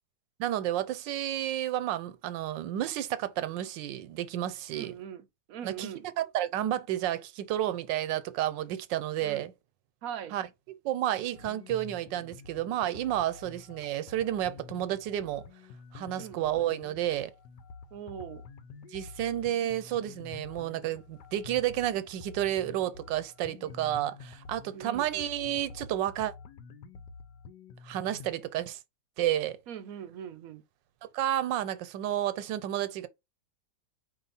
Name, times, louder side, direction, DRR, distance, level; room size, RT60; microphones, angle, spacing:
voice 1, 0.4-4.9 5.6-9.5 10.3-10.5 10.8-15.4 15.9-17.3 18.9-26.3 27.8-28.8 29.2-29.6 31.1-33.1, right 12 dB, 85° right, 1.3 m, -31 dB
voice 2, 4.7-6.0 9.2-9.5 10.0-10.4 16.2-16.4 17.9-18.4 24.7-25.1 29.7-30.6, right 9 dB, 65° right, 0.9 m, -41 dB
sound 1, 11.3-28.3, left 5 dB, 75° left, 1.3 m, -49 dB
4.6 x 2.8 x 4.0 m
omnidirectional pair, 2.0 m